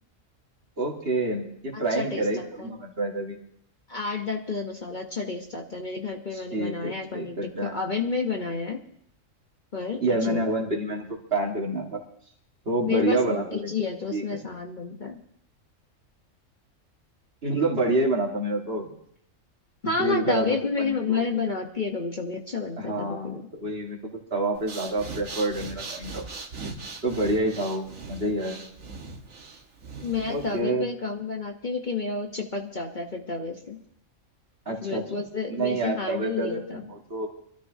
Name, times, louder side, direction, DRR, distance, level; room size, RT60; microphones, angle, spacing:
voice 1, 0.8-3.4 6.3-7.7 10.0-12.0 12.7-13.7 14.1-14.4 17.4-18.9 19.8-21.2 22.8-24.0 24.3-26.2 27.0-28.7 30.3-30.9 34.7-35.0 35.5-37.3, right 2 dB, 50° right, 0 dB, 2.1 m, -28 dB
voice 2, 1.7-2.7 3.9-8.8 9.7-10.4 12.9-15.2 19.8-23.5 30.0-33.8 34.7-36.8, left 4 dB, 40° left, 2 dB, 1.1 m, -30 dB
Breathing, 24.5-30.6, right 4 dB, 90° right, 1.8 m, -40 dB
24.0 x 13.0 x 2.7 m, 0.67 s
omnidirectional pair, 1.4 m